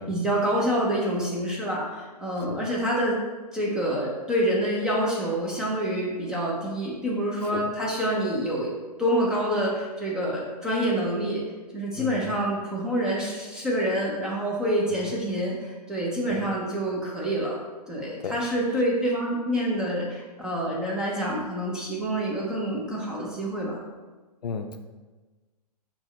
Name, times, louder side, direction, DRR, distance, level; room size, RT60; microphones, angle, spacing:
voice 1, 0.0-3.2 3.5-8.7 9.0-11.4 11.7-17.6 17.9-23.8, right 1 dB, 5° right, -5 dB, 0.3 m, -27 dB
voice 2, 24.4-24.8, left 5 dB, 70° left, 7 dB, 0.4 m, -33 dB
6.0 x 2.0 x 3.1 m, 1.3 s
figure-of-eight pair, 125°, 21 cm